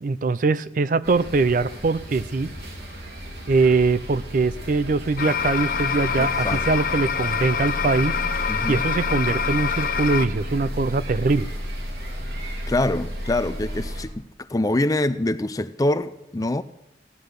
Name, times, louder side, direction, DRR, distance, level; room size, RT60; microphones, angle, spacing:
voice 1, 0.0-2.5 3.5-8.1 8.7-11.5, right 3 dB, 45° right, 0.4 m, -22 dB
sound 1, 1.0-14.0, equal, 60° right, 3.5 m, -33 dB
sound 2, 5.2-10.3, left 7 dB, 50° left, 0.7 m, -26 dB
voice 2, 6.2-6.7 8.5-8.8 12.7-14.2 14.5-16.6, left 1 dB, 20° left, 0.4 m, -25 dB
16.5 x 11.0 x 6.6 m
head